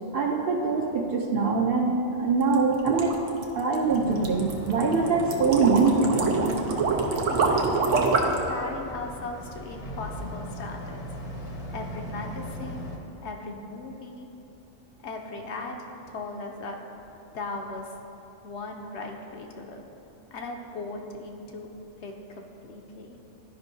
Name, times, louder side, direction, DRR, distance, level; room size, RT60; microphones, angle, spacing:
voice 1, 0.1-3.2 3.5-6.6, right 4 dB, 60° right, 1 dB, 0.7 m, -24 dB
sound 1, 2.4-8.5, right 4 dB, 85° right, 1.1 m, -26 dB
Boat Water vehicle, 3.9-13.0, equal, 35° left, 0.7 m, -39 dB
voice 2, 7.3-11.0 11.7-12.9 13.2-14.3 15.0-15.8 16.1-16.8 17.3-17.9 18.4-19.8 20.3-21.7 22.0-23.2, left 3 dB, 65° left, 2 dB, 0.9 m, -38 dB
11.5 x 5.2 x 2.7 m, 3.0 s
omnidirectional pair, 1.3 m